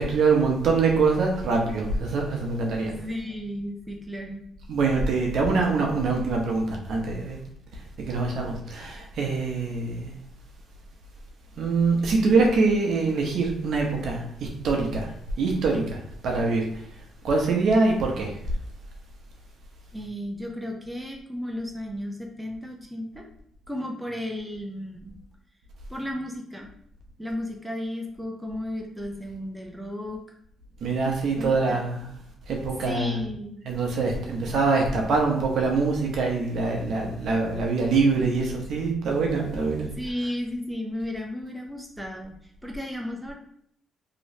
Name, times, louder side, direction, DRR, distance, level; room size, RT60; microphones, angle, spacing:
voice 1, 0.0-2.9 4.7-7.4 8.0-10.1 11.6-15.1 15.4-16.8 17.2-18.3 30.8-32.1 32.5-33.2 33.6-39.9, right 4 dB, 70° right, 1 dB, 0.9 m, -24 dB
voice 2, 2.8-4.4 19.9-23.2 23.7-25.1 25.9-26.7 27.2-30.2 31.4-31.8 32.8-33.6 40.0-42.3 42.6-43.3, left 1 dB, 5° right, 1 dB, 0.7 m, -34 dB
3.1 x 3.0 x 2.8 m, 0.69 s
cardioid pair, 90°, 0 cm